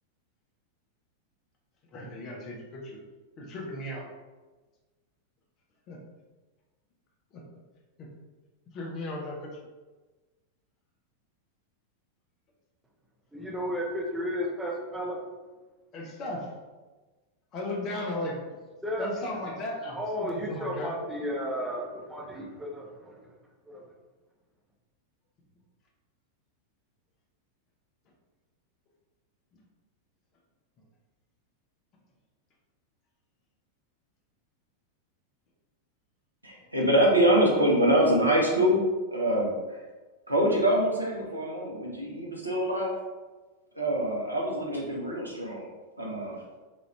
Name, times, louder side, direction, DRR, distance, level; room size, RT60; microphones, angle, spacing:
voice 1, 1.9-3.0 3.4-4.1 5.9-6.0 7.3-7.4 8.0-8.1 8.7-9.5 15.9-16.5 17.5-18.4 19.0-20.9 37.2-37.3, left 1 dB, 35° left, -1 dB, 0.7 m, -36 dB
voice 2, 13.3-15.2 18.8-19.1 19.9-23.2 23.7-23.9, equal, 5° right, -3 dB, 0.7 m, -33 dB
voice 3, 36.4-38.8 39.1-39.8 40.3-42.9 43.8-45.6 46.0-46.4, right 1 dB, 85° right, -2 dB, 0.7 m, -25 dB
3.0 x 2.5 x 3.1 m, 1.2 s
figure-of-eight pair, 90°, 0 cm